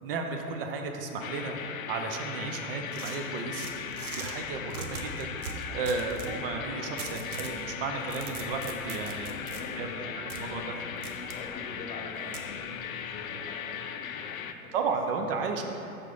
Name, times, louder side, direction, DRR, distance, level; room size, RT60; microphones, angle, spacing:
voice 1, 0.0-1.6 1.9-3.6 4.2-5.3 5.7-9.3 9.8-9.9 10.3-10.6 14.7-15.6, right 4 dB, 40° right, 4 dB, 0.6 m, -33 dB
sound 1, 1.2-14.5, left 7 dB, 65° left, 0.5 m, -38 dB
sound 2, 2.9-4.3 4.7-6.3 7.0-7.6 8.0-9.6 10.3-10.4 11.0-11.4 12.3-12.5, right 5 dB, 70° right, 0.8 m, -40 dB
voice 2, 9.2-14.7 15.4-15.5, left 3 dB, 20° left, 1 dB, 0.5 m, -45 dB
5.1 x 4.6 x 5.2 m, 2.7 s
figure-of-eight pair, 95°, 45 cm